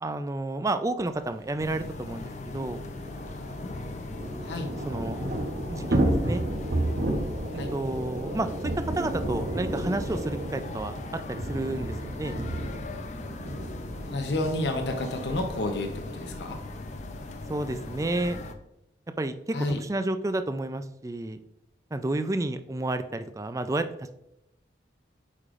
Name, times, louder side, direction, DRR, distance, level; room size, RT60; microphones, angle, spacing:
voice 1, 0.0-2.8 4.8-5.2 5.7-6.4 7.7-8.5 8.8-11.0 11.3-12.4 17.5-18.4 19.2-21.4 21.9-23.9, right 2 dB, 15° right, 10 dB, 0.3 m, -30 dB
sound 1, 1.6-18.5, left 2 dB, 40° left, 0.5 m, -39 dB
Thunder / Rain, 1.6-1.7 1.9-2.0 2.3-18.2, right 1 dB, 55° right, 0.9 m, -33 dB
voice 2, 14.0-16.6 19.5-19.8, left 2 dB, 70° left, 4 dB, 0.8 m, -30 dB
8.4 x 4.9 x 2.5 m, 0.85 s
head